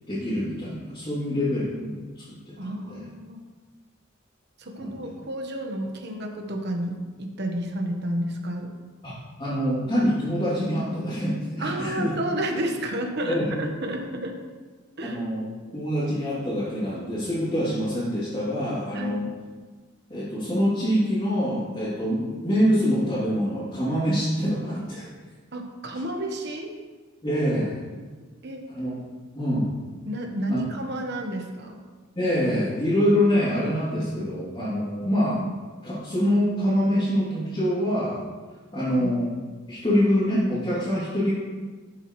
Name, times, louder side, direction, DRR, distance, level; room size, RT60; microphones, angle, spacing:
voice 1, 0.1-3.0 4.8-5.1 9.0-12.1 13.3-13.5 15.0-15.4 15.7-19.3 20.1-25.1 27.2-27.8 28.7-29.0 29.3-29.8 30.5-30.6 32.2-35.4 35.8-38.2 38.7-39.3 39.7-41.3, equal, 25° left, -11 dB, 2.8 m, -25 dB
voice 2, 2.6-3.4 4.6-8.7 11.6-14.3 15.0-15.2 18.9-19.3 25.5-26.7 28.4-28.6 30.0-31.8 38.9-39.1, right 1 dB, 55° right, 3 dB, 1.2 m, -31 dB
12.0 x 7.3 x 3.2 m, 1.4 s
head